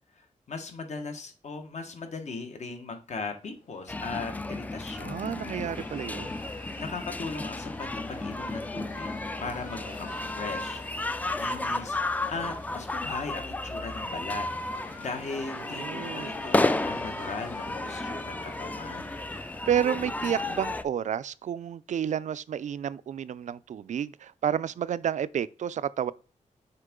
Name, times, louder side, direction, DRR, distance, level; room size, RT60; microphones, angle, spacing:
voice 1, 0.5-5.2 6.8-9.1 9.4-14.5 14.7-19.2, left 4 dB, 60° left, 1.4 m, -38 dB
sound 1, 3.4-20.6, left 4 dB, 85° left, 1.9 m, -49 dB
sound 2, 3.9-20.8, left 2 dB, 10° left, 0.4 m, -33 dB
voice 2, 5.0-6.4 15.6-16.4 19.3-26.1, right 9 dB, 70° right, 0.4 m, -31 dB
6.6 x 4.6 x 3.7 m
wide cardioid pair, 140°, 13 cm